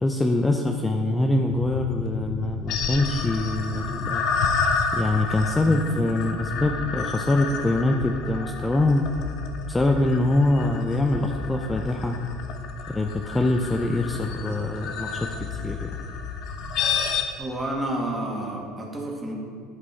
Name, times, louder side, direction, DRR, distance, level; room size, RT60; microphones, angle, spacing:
voice 1, 0.0-4.3 4.9-9.0 9.7-12.2 12.9-15.9, left 2 dB, 15° left, 3 dB, 0.5 m, -24 dB
sound 1, 1.5-17.2, left 5 dB, 55° left, 0.8 m, -30 dB
voice 2, 17.4-19.3, right 1 dB, 15° right, -2 dB, 1.9 m, -30 dB
11.0 x 5.2 x 3.4 m, 2.4 s
hypercardioid pair, 70°, 0 cm